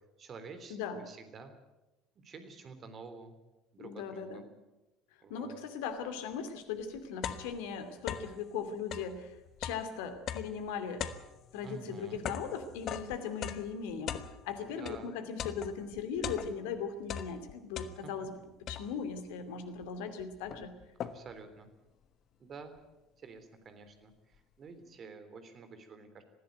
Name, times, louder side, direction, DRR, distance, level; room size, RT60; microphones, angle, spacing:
voice 1, 0.2-1.5 2.2-3.4 3.7-4.4 5.2-5.6 11.6-12.2 14.6-15.1 18.0-18.1 21.1-21.7 22.4-22.7 23.2-24.1 24.6-26.2, right 4 dB, 40° right, 9 dB, 3.4 m, -49 dB
voice 2, 0.7-1.0 3.8-4.5 5.3-9.3 9.6-11.1 11.5-20.7, left 6 dB, 65° left, 9 dB, 2.6 m, -39 dB
sound 1, 6.3-6.4 6.8-8.4 8.8-15.1 15.4-16.8 17.0-18.3 18.7-19.2 19.8-19.9 20.2-21.4, left 9 dB, 45° left, 1.3 m, -41 dB
21.0 x 15.5 x 9.3 m, 1.0 s
figure-of-eight pair, 65°, 0 cm